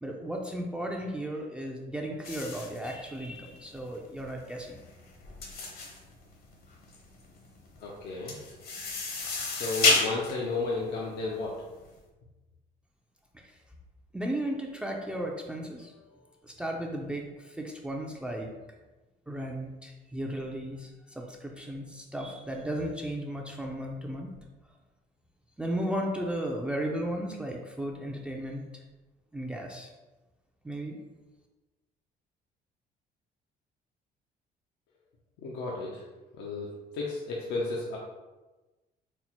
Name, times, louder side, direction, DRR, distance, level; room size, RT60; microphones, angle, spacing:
voice 1, 0.0-4.8 13.3-13.5 14.1-15.9 16.4-18.5 19.3-24.3 25.6-28.6 29.3-29.9 30.6-31.0, right 1 dB, 5° right, 0 dB, 0.4 m, -35 dB
sound 1, 2.2-11.9, left 3 dB, 60° left, 0.9 m, -32 dB
voice 2, 7.8-8.3 9.5-11.6 35.4-36.0 36.3-36.7 36.9-38.0, left 3 dB, 80° left, -3 dB, 0.7 m, -33 dB
4.2 x 2.0 x 4.3 m, 1.2 s
cardioid pair, 110°, 17 cm